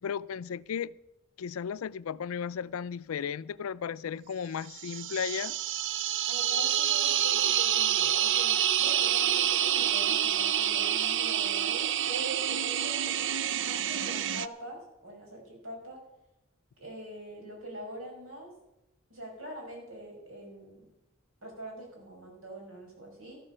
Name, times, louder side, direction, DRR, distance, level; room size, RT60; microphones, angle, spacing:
voice 1, 0.0-0.9 1.4-5.6, left 7 dB, 80° left, 0.4 m, -35 dB
sound 1, 4.7-14.5, right 10 dB, 60° right, 0.5 m, -27 dB
voice 2, 6.3-13.3 13.6-16.0 16.8-18.5 19.1-20.8 21.4-23.4, right 1 dB, 90° right, 6.0 m, -43 dB
13.0 x 13.0 x 5.5 m
head